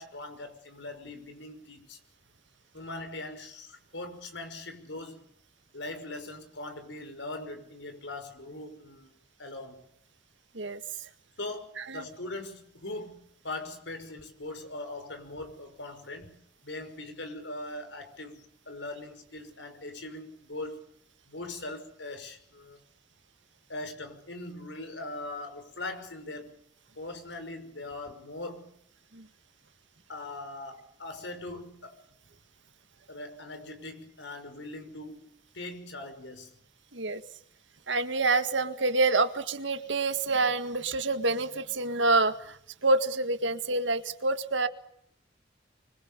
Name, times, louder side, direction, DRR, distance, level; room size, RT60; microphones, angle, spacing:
voice 1, 0.0-2.0 2.7-5.2 5.7-9.1 9.4-9.9 11.4-13.2 13.4-20.9 21.3-22.8 23.7-26.6 27.0-28.7 30.1-31.9 33.1-36.5, left 2 dB, 80° left, 6.0 m, -41 dB
voice 2, 37.9-42.6 42.8-44.7, right 3 dB, 90° right, 1.8 m, -27 dB
25.5 x 25.5 x 6.9 m
head